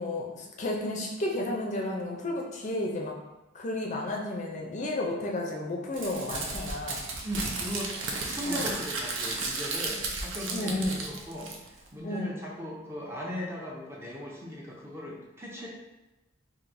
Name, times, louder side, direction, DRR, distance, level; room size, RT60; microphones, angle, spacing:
voice 1, 0.0-3.1 3.5-7.0 8.5-8.7 10.5-11.1 12.0-12.3, left 1 dB, 40° left, -1 dB, 0.5 m, -32 dB
Crumpling crinkling, 5.9-11.9, right 3 dB, 90° right, 0.6 m, -34 dB
voice 2, 7.2-7.9 8.3-15.7, equal, 15° right, -3 dB, 0.6 m, -38 dB
4.6 x 2.6 x 2.6 m, 1.0 s
head